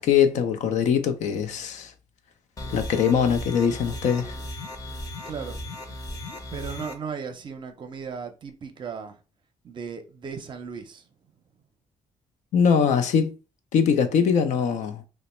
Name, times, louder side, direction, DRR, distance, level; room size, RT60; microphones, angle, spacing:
voice 1, 0.0-1.9 2.7-4.3 12.5-13.3 13.7-15.0, left 7 dB, 75° left, 0.5 m, -22 dB
sound 1, 2.6-6.9, left 1 dB, 30° left, 0.7 m, -36 dB
voice 2, 5.3-5.8 6.5-9.2 9.6-11.1, right 6 dB, 40° right, 0.6 m, -36 dB
3.0 x 2.1 x 4.2 m
cardioid pair, 160°, 12 cm